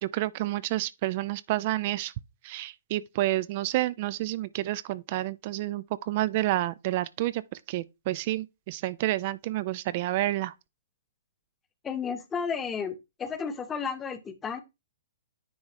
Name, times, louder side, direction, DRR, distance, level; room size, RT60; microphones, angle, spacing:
voice 1, 0.0-2.1 2.4-10.5, right 16 dB, 45° right, 0.4 m, -29 dB
voice 2, 11.8-14.6, left 6 dB, 20° left, 1.0 m, -33 dB
9.8 x 3.6 x 3.1 m
hypercardioid pair, 125°, 0 cm